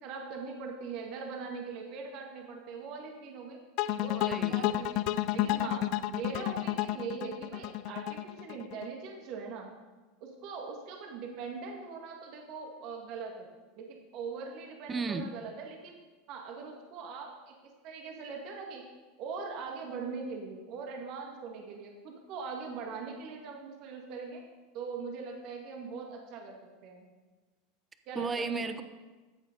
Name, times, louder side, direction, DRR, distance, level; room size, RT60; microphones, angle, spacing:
voice 1, 0.0-3.6 4.0-5.1 5.3-9.7 10.2-13.5 13.8-15.9 16.3-17.6 17.8-18.9 19.2-24.4 24.7-27.1 28.1-28.4, right 5 dB, 55° right, 1 dB, 2.0 m, -41 dB
sound 1, 3.8-8.9, left 14 dB, 55° left, 0.5 m, -31 dB
voice 2, 4.1-4.7 14.9-15.3 28.1-28.8, right 4 dB, 20° right, 9 dB, 1.0 m, -34 dB
14.0 x 7.8 x 5.3 m, 1.3 s
hypercardioid pair, 90°, 0 cm